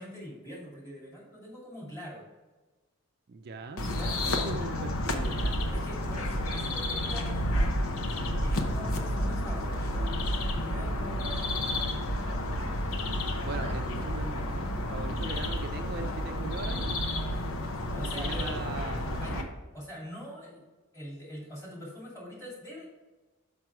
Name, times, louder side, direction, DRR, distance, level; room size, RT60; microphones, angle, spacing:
voice 1, 0.0-2.2 3.9-4.6 5.7-7.7 8.1-10.1 10.5-12.4 17.8-18.6 19.2-20.6 20.9-22.9, equal, 15° left, -5 dB, 2.5 m, -43 dB
voice 2, 3.3-4.0 4.3-5.7 8.6-8.7 13.4-17.0 18.0-19.5, right 4 dB, 50° right, 6 dB, 0.4 m, -40 dB
sound 1, 3.8-19.4, left 1 dB, 80° left, 0.8 m, -31 dB
6.0 x 5.4 x 4.6 m, 1.2 s
head